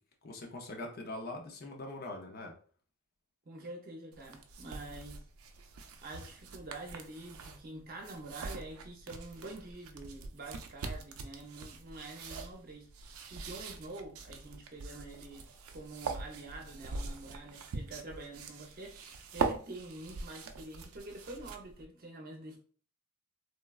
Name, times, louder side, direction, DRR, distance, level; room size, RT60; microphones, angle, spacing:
voice 1, 0.2-2.5, left 2 dB, 45° left, 0.5 m, -42 dB
voice 2, 3.5-5.2 6.0-12.9 13.3-15.4 15.7-19.0 19.3-22.6, right 2 dB, 45° right, 0.6 m, -46 dB
sound 1, 4.1-21.9, right 4 dB, 90° right, 0.4 m, -42 dB
3.2 x 2.2 x 2.3 m
head